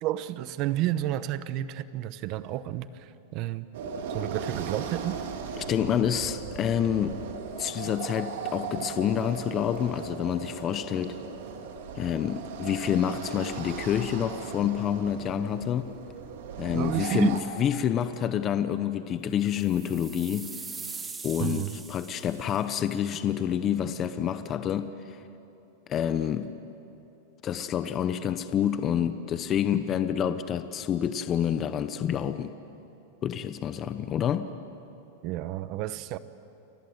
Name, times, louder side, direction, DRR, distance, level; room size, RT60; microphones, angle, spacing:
voice 1, 0.0-3.7 4.1-5.2 16.7-17.3 21.4-21.8 35.2-36.2, right 13 dB, 35° right, 14 dB, 0.9 m, -31 dB
sound 1, 3.7-17.4, right 6 dB, 65° right, 3.0 m, -37 dB
voice 2, 5.6-7.2 7.6-11.2 12.0-15.9 16.6-20.5 21.2-25.2 25.9-26.5 27.4-32.5 33.2-34.5, left 9 dB, 20° left, 10 dB, 0.8 m, -28 dB
sound 2, 19.5-22.7, right 4 dB, 10° right, 1.6 m, -42 dB
30.0 x 24.5 x 7.9 m, 2.9 s
supercardioid pair, 170°, 0 cm